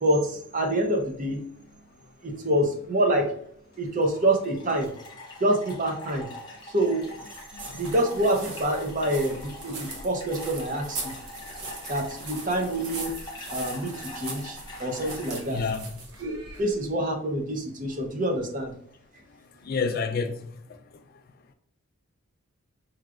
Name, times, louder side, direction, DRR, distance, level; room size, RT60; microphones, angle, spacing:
voice 1, 0.0-1.4 2.2-3.3 3.8-4.9 5.4-6.3 6.7-7.0 7.7-9.4 9.6-11.1 11.9-13.1 13.5-15.6 16.2-18.7, right 1 dB, 35° right, 0.6 m, -26 dB
sound 1, 3.1-3.3 3.7-15.4, left 2 dB, 20° left, 0.7 m, -44 dB
sound 2, 7.0-16.9, right 3 dB, 85° right, 0.9 m, -40 dB
voice 2, 7.5-7.9 15.5-15.9 19.6-20.5, left 5 dB, 45° left, 0.3 m, -29 dB
4.8 x 3.1 x 2.4 m
head